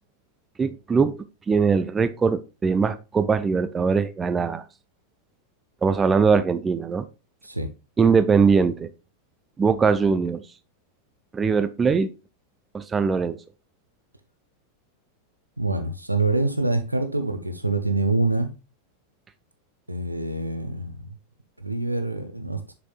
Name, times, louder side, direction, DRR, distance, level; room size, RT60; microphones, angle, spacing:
voice 1, 0.6-4.6 5.8-7.1 8.0-8.9 9.6-10.4 11.3-12.1 12.7-13.4, right 5 dB, 15° right, 0.5 m, -21 dB
voice 2, 15.6-18.5 19.9-21.1 21.6-22.6, right 2 dB, 85° right, 0.9 m, -25 dB
7.2 x 6.2 x 2.4 m
figure-of-eight pair, 90°, 0 cm